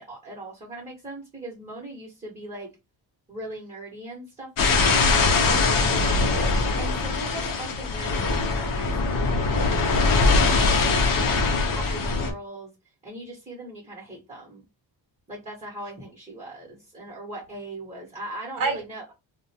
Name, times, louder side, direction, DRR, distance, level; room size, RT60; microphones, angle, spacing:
voice 1, 0.0-2.7 3.3-5.1 6.1-6.4 6.8-12.7 13.0-14.6 15.3-19.0, right 1 dB, 15° right, 0.8 m, -39 dB
sound 1, 4.6-12.3, left 3 dB, 50° left, 0.6 m, -22 dB
voice 2, 5.1-6.7 18.6-18.8, right 4 dB, 50° right, 0.7 m, -32 dB
2.4 x 2.1 x 2.6 m
cardioid pair, 135°, 45 cm